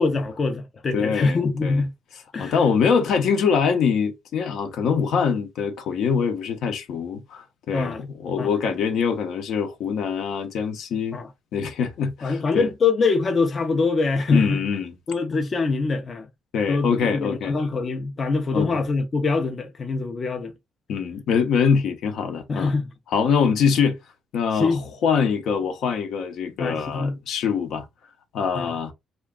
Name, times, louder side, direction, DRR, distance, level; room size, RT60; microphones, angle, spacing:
voice 1, 0.0-1.9 2.3-2.6 7.7-8.0 8.4-8.5 11.1-11.3 12.2-14.6 15.1-16.3 16.7-20.5 22.5-22.9 24.5-24.8 26.6-27.2 28.5-28.8, left 4 dB, 40° left, 0.5 m, -24 dB
voice 2, 0.9-1.8 2.4-11.2 11.5-12.7 14.3-14.9 16.5-17.5 18.5-18.7 20.9-22.7 23.1-24.0 24.3-27.8 28.3-28.9, left 6 dB, 75° left, 0.7 m, -24 dB
2.4 x 2.2 x 3.6 m
cardioid pair, 90°, 0 cm